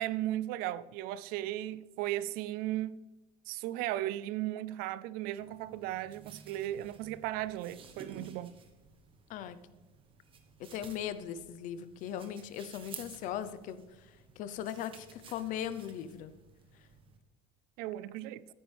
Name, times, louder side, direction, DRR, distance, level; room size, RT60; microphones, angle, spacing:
voice 1, 0.0-3.0 3.5-8.6 17.8-18.5, right 14 dB, 55° right, 0.4 m, -36 dB
sound 1, 5.4-17.2, right 6 dB, 30° right, 1.3 m, -54 dB
voice 2, 10.6-13.8 14.4-16.3, left 10 dB, 45° left, 0.7 m, -39 dB
13.5 x 10.0 x 3.4 m
cardioid pair, 160°, 18 cm